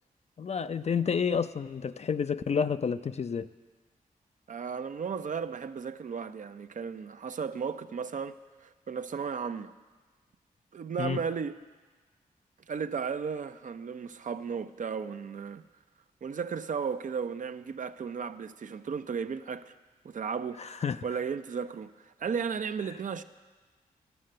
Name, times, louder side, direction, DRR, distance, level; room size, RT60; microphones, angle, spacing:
voice 1, 0.4-3.5 11.0-11.2 20.6-21.0, left 6 dB, 45° left, 0.4 m, -30 dB
voice 2, 4.5-8.4 8.6-9.7 10.7-11.6 12.7-15.6 16.2-19.7 20.0-21.9 22.2-23.2, right 6 dB, 55° right, 0.5 m, -35 dB
12.0 x 6.5 x 7.7 m
cardioid pair, 50°, 16 cm